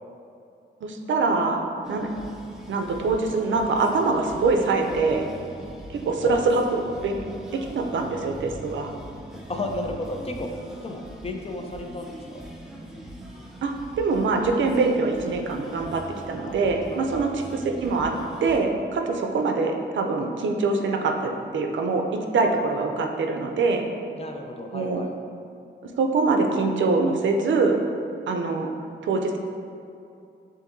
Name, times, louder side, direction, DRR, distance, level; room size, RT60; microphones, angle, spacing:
voice 1, 0.8-2.1 2.7-5.3 5.9-7.2 7.5-8.9 13.6-16.0 16.3-18.1 18.4-22.0 22.3-23.8 24.7-25.0 26.0-27.8 28.3-28.7 29.0-29.4, right 3 dB, 70° right, 3 dB, 0.5 m, -24 dB
sound 1, 1.8-18.6, right 1 dB, ahead, 0.7 m, -41 dB
voice 2, 9.5-10.5 10.8-12.5 16.4-16.6 16.9-17.3 24.1-25.1, left 2 dB, 30° left, 3 dB, 0.5 m, -33 dB
7.0 x 2.6 x 2.6 m, 2.6 s
cardioid pair, 80°, 20 cm